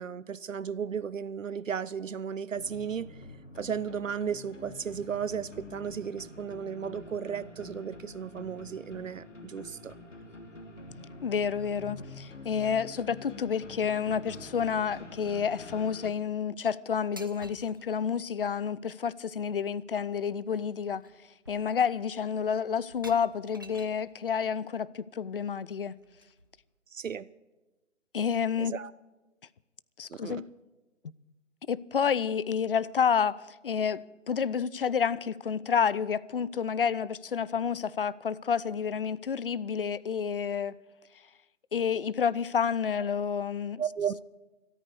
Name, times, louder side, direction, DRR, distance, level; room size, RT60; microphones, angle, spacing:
voice 1, 0.0-3.3 3.6-9.9 26.9-27.3 28.6-28.9 30.1-30.5 43.8-44.2, right 7 dB, 80° right, 0.6 m, -35 dB
sound 1, 2.5-16.1, left 2 dB, 70° left, 3.3 m, -47 dB
voice 2, 11.2-21.0 21.5-25.9 28.1-28.8 30.0-30.4 31.7-40.8 41.7-43.8, left 7 dB, 45° left, 0.6 m, -29 dB
sound 2, 17.2-17.8 19.8-19.9 20.3-20.6 21.0-21.2 21.4-22.0 22.9-24.1 25.7-26.7, equal, 20° right, 0.4 m, -51 dB
13.5 x 13.5 x 6.9 m
figure-of-eight pair, 140°, 38 cm